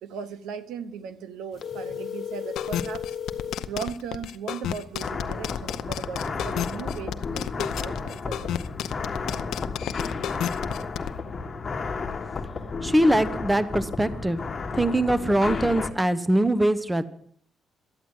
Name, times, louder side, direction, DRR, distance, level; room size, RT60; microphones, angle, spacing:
voice 1, 0.0-3.0 3.7-8.7, right 6 dB, 90° right, 13 dB, 1.0 m, -37 dB
sound 1, 1.6-3.7, left 7 dB, 55° left, 1.1 m, -34 dB
sound 2, 2.6-11.1, left 10 dB, 80° left, 0.7 m, -31 dB
sound 3, 5.0-15.9, left 4 dB, 35° left, 1.3 m, -32 dB
voice 2, 12.8-14.4 14.7-17.0, right 1 dB, 10° right, 14 dB, 0.9 m, -22 dB
12.0 x 9.1 x 8.0 m, 0.62 s
cardioid pair, 90°, 0 cm